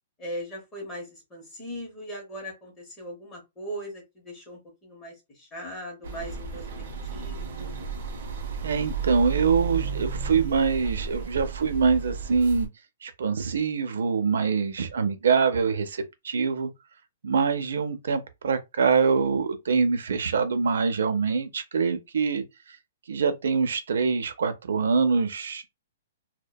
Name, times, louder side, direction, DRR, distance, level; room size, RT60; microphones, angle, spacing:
voice 1, 0.2-6.7 7.1-7.7, equal, 10° left, 0.8 m, -39 dB
sound 1, 6.0-12.7, right 6 dB, 50° right, 0.7 m, -33 dB
voice 2, 8.6-12.7 13.0-16.7 17.2-22.4 23.1-25.7, right 5 dB, 80° right, 0.4 m, -24 dB
2.7 x 2.1 x 2.2 m
hypercardioid pair, 175°, 0 cm